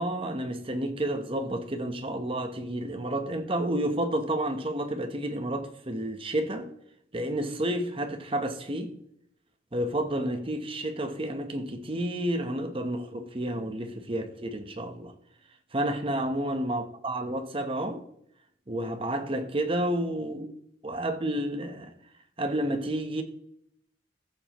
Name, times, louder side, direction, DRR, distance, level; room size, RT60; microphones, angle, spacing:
voice 1, 0.0-6.7 7.1-8.9 9.7-15.1 15.7-18.0 18.7-20.5 20.8-21.9 22.4-23.2, right 1 dB, 30° right, 1.0 m, -30 dB
14.5 x 7.1 x 3.0 m
head